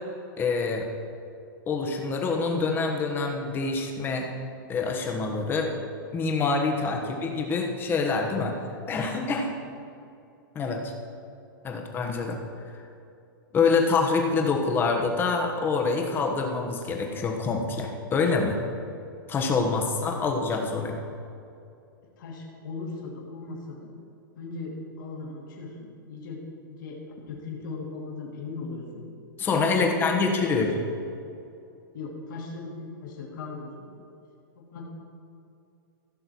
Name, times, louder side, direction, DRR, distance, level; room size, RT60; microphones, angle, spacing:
voice 1, 0.4-0.9 1.7-4.3 4.7-5.7 6.1-8.5 8.9-9.5 10.5-10.9 11.6-12.4 13.5-18.6 19.3-21.0 29.4-30.7, left 4 dB, 20° left, 2 dB, 1.3 m, -26 dB
voice 2, 22.2-23.9 24.3-29.0 29.7-30.9 31.9-34.1 34.5-34.8, left 3 dB, 65° left, -2 dB, 2.6 m, -39 dB
15.5 x 6.6 x 4.6 m, 2.6 s
hypercardioid pair, 150°, 12 cm